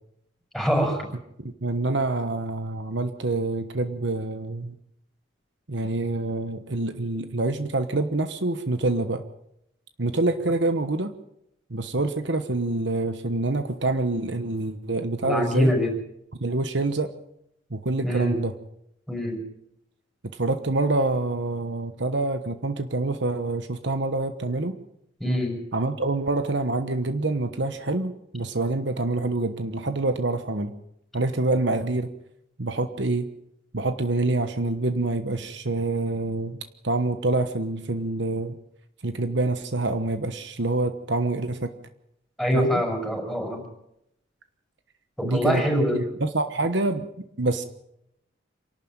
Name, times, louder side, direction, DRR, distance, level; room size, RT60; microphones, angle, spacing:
voice 1, 0.5-1.1 15.2-15.9 18.0-18.4 19.1-19.4 25.2-25.6 42.4-43.6 45.2-46.0, equal, ahead, 2 dB, 6.2 m, -24 dB
voice 2, 1.4-4.7 5.7-9.2 10.0-11.1 11.7-15.7 16.4-17.1 17.7-18.5 20.4-24.8 25.7-30.7 31.1-32.1 32.6-33.3 33.7-36.6 36.8-38.5 39.0-41.7 42.5-42.8 45.2-45.6 45.9-47.6, right 2 dB, 60° right, 9 dB, 1.2 m, -26 dB
27.0 x 12.0 x 9.0 m, 0.80 s
head